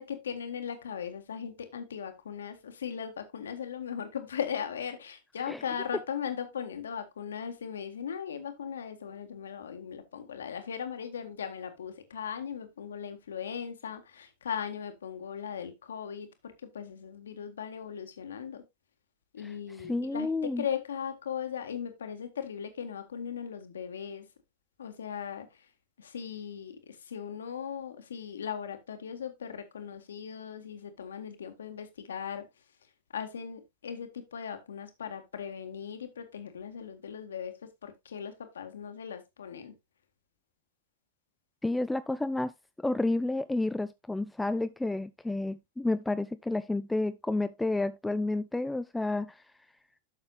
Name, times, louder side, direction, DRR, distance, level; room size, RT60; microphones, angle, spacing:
voice 1, 0.0-18.6 19.3-24.3 24.8-25.6 26.0-32.4 33.1-39.7, left 7 dB, 65° left, 1.6 m, -38 dB
voice 2, 19.4-20.6 41.6-42.5 42.8-49.4, left 2 dB, 5° left, 0.4 m, -30 dB
12.0 x 6.6 x 2.4 m
figure-of-eight pair, 90°, 0 cm